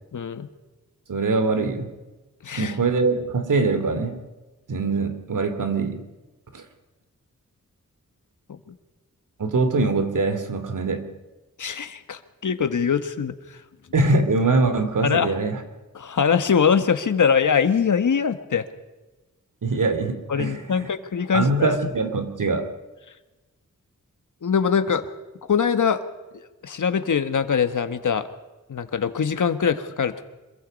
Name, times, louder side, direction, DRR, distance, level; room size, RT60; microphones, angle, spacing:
voice 1, 0.1-0.5 2.4-2.8 8.5-8.6 11.6-13.6 15.0-15.3 15.9-18.6 20.3-21.8 24.4-25.0 25.5-26.0 26.6-28.3 28.7-30.2, left 6 dB, 75° left, 9 dB, 1.6 m, -22 dB
voice 2, 1.1-1.9 2.6-4.2 4.7-6.0 6.5-6.6 9.4-11.1 13.9-15.6 19.6-20.9 21.3-22.7, right 3 dB, 75° right, 8 dB, 2.7 m, -23 dB
26.0 x 22.5 x 5.4 m, 1.2 s
wide cardioid pair, 135°, 31 cm